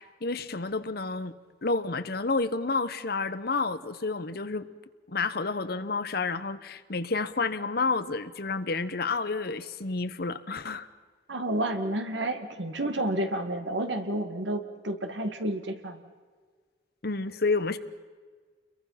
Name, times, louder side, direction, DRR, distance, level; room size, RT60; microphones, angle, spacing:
voice 1, 0.0-1.3 1.6-4.7 5.1-10.9 17.0-17.8, left 3 dB, 55° left, 12 dB, 1.0 m, -30 dB
voice 2, 11.3-16.0, right 1 dB, 80° right, 7 dB, 2.0 m, -30 dB
29.0 x 22.5 x 5.8 m, 1.5 s
head